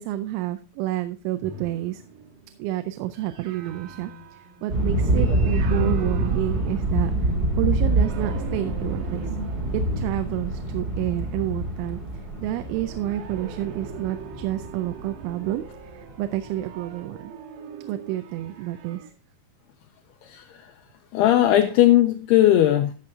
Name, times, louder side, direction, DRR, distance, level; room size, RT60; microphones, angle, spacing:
voice 1, 0.0-2.0 2.6-7.3 7.6-9.3 9.7-12.0 12.4-15.7 15.9-17.3 17.9-19.1, right 14 dB, 85° right, 10 dB, 3.0 m, -29 dB
sound 1, 1.4-7.3 7.8-11.8 12.6-19.1, right 6 dB, 65° right, 2.2 m, -43 dB
sound 2, 4.7-16.2, right 1 dB, 45° right, 1.3 m, -26 dB
voice 2, 20.2-20.8 21.1-22.9, left 13 dB, 90° left, 6 dB, 2.3 m, -18 dB
13.5 x 6.2 x 3.6 m, 0.35 s
omnidirectional pair, 5.3 m